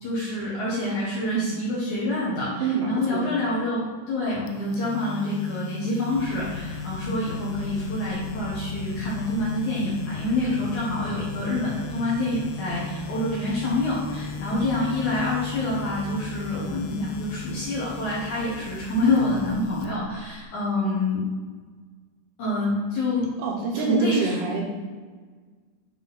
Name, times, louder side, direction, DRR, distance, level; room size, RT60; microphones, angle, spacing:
voice 1, 0.0-21.2 22.4-23.3 23.7-24.3, left 2 dB, 65° left, -7 dB, 2.1 m, -27 dB
voice 2, 2.6-3.3 23.4-24.6, right 5 dB, 75° right, -1 dB, 2.6 m, -26 dB
sound 1, 4.5-20.4, left 6 dB, 90° left, 2.9 m, -37 dB
sound 2, 6.1-19.6, left 1 dB, 45° left, 1.2 m, -42 dB
sound 3, 11.7-12.9 13.6-14.8 15.5-16.8 17.5-18.7, right 2 dB, 50° right, 1.7 m, -47 dB
9.4 x 3.9 x 4.0 m, 1.5 s
omnidirectional pair, 5.1 m